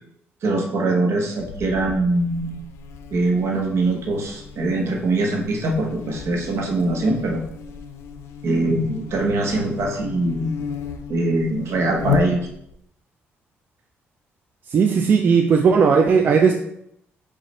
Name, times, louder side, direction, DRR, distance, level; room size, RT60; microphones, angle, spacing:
voice 1, 0.4-2.6 3.1-7.4 8.4-10.5 11.1-12.4, right 2 dB, 65° right, 1 dB, 1.0 m, -22 dB
Buzz, 1.4-12.8, left 7 dB, 85° left, 0.4 m, -34 dB
voice 2, 14.7-16.5, right 5 dB, 40° right, 3 dB, 0.3 m, -16 dB
5.1 x 2.4 x 4.2 m, 0.75 s
cardioid pair, 140°, 5 cm